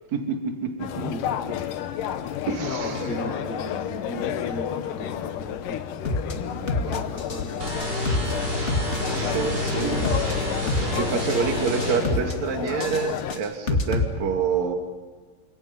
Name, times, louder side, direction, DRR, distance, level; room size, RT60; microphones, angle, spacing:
voice 1, 0.1-0.9 2.5-3.3 6.5-6.7 9.0-10.0 11.0-14.8, right 6 dB, 50° right, 4 dB, 3.6 m, -27 dB
sound 1, 0.8-13.3, left 10 dB, 70° left, 2.4 m, -31 dB
voice 2, 2.6-8.7 9.1-11.0 11.3-11.5 11.8-12.0, left 1 dB, 85° left, -2 dB, 7.5 m, -37 dB
sound 2, 6.0-6.3 6.7-7.4 7.7-8.3 8.7-9.4 9.7-10.3 10.7-11.4 11.7-12.3 12.7-14.0, left 3 dB, 30° left, 1.2 m, -26 dB
sound 3, 7.6-12.0, equal, 25° right, 7.3 m, -29 dB
29.5 x 27.0 x 5.5 m, 1.5 s
omnidirectional pair, 4.4 m